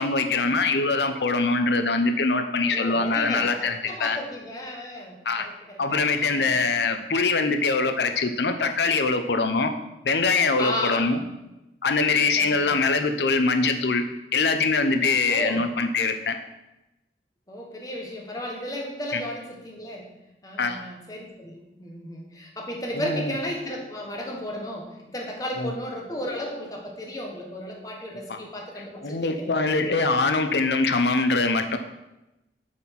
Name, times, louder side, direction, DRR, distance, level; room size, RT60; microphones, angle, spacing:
voice 1, 0.0-4.2 5.2-5.5 5.8-9.7 10.0-11.2 11.8-14.0 14.3-16.4 19.1-19.2 20.6-20.8 22.9-23.3 25.6-25.7 28.3-28.4 29.0-31.8, left 3 dB, 70° left, 7 dB, 0.7 m, -23 dB
voice 2, 2.7-6.6 10.6-11.3 12.4-12.8 15.3-15.6 17.5-20.1 20.4-29.4, left 1 dB, 20° left, 0 dB, 1.3 m, -34 dB
7.5 x 4.3 x 5.8 m, 0.95 s
head